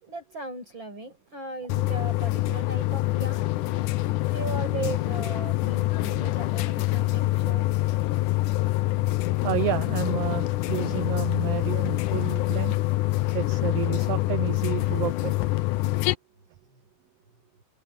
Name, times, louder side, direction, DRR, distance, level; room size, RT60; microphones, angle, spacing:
voice 1, 0.0-3.5 4.3-7.8, right 3 dB, 35° right, 7.1 m, -37 dB
sound 1, 1.7-16.1, left 18 dB, 85° left, 2.4 m, -25 dB
voice 2, 9.4-12.8 13.3-15.4, right 14 dB, 85° right, 1.4 m, -30 dB
open air
omnidirectional pair, 3.6 m